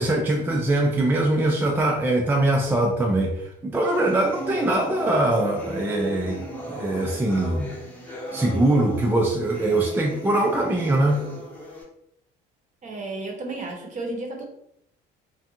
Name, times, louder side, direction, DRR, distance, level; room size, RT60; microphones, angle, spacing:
voice 1, 0.0-7.8 8.3-11.3, right 1 dB, 10° right, 0 dB, 0.3 m, -22 dB
sound 1, 3.8-11.8, equal, 10° left, 0.8 m, -36 dB
voice 2, 12.8-14.4, right 2 dB, 40° right, 1 dB, 0.8 m, -32 dB
2.5 x 2.2 x 2.7 m, 0.74 s
cardioid pair, 105°, 20 cm